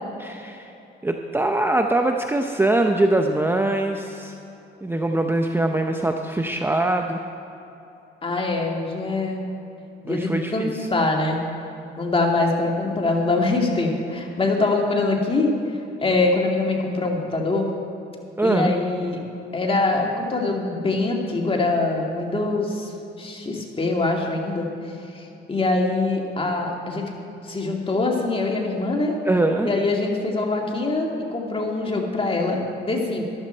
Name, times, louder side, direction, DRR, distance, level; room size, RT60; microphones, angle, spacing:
voice 1, 0.2-0.7 1.0-4.4 4.8-7.2 10.1-10.9 18.4-18.7 29.3-29.7, right 2 dB, 10° right, 4 dB, 0.7 m, -22 dB
voice 2, 8.2-9.5 10.0-11.4 12.0-15.5 16.0-17.7 18.4-19.2 19.5-22.9 23.2-24.7 25.1-27.1 27.4-29.1 29.6-33.2, left 2 dB, 30° left, 0 dB, 2.3 m, -23 dB
14.0 x 11.5 x 4.5 m, 2.9 s
cardioid pair, 90°, 20 cm